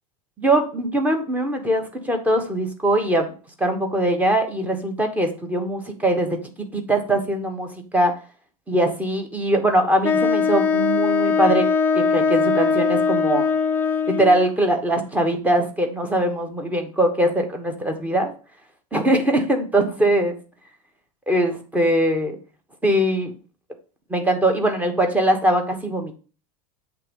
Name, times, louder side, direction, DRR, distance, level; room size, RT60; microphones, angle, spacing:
voice 1, 0.4-3.3 3.6-6.4 6.7-8.1 8.7-11.7 11.9-13.4 14.1-18.3 18.9-20.3 21.3-22.4 22.8-23.3 24.1-26.1, right 1 dB, 10° right, 4 dB, 1.2 m, -21 dB
Wind instrument woodwind instrument, 10.0-14.5, left 5 dB, 10° left, 0.5 m, -20 dB
7.8 x 3.5 x 5.2 m, 0.37 s
supercardioid pair, 140°, 18 cm